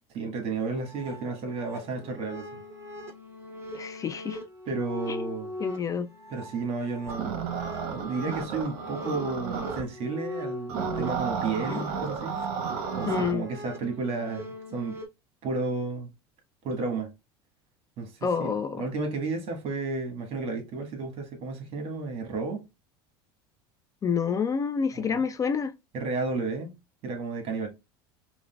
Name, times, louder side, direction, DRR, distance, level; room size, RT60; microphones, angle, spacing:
voice 1, 0.1-2.6 4.7-5.5 6.3-7.5 7.9-12.4 13.0-15.0 15.4-16.1 16.6-17.1 18.0-22.6 24.9-25.2 25.9-26.7 27.0-27.7, right 3 dB, 50° right, 1.3 m, -32 dB
sound 1, 0.7-15.1, left 1 dB, 20° right, 0.8 m, -41 dB
voice 2, 3.7-4.4 5.1-5.2 5.6-6.1 11.7-11.9 13.1-13.4 18.2-18.8 24.0-25.7, left 6 dB, 25° left, 0.3 m, -28 dB
sound 2, 7.1-9.8 10.7-13.3, right 6 dB, 65° right, 0.8 m, -32 dB
4.7 x 2.2 x 2.2 m
supercardioid pair, 110°, 13 cm